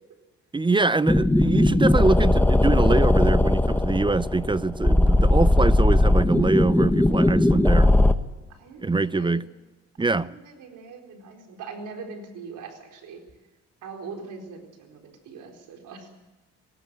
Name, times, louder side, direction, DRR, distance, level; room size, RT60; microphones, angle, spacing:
voice 1, 0.5-8.0 8.8-9.4 10.0-10.3, right 3 dB, 15° right, 0.5 m, -24 dB
sound 1, 1.1-8.1, left 1 dB, 5° left, 1.0 m, -19 dB
voice 2, 8.5-9.4 10.0-13.2 13.8-16.1, right 4 dB, 85° right, 4.3 m, -41 dB
19.0 x 18.0 x 7.6 m
cardioid pair, 90°, 30 cm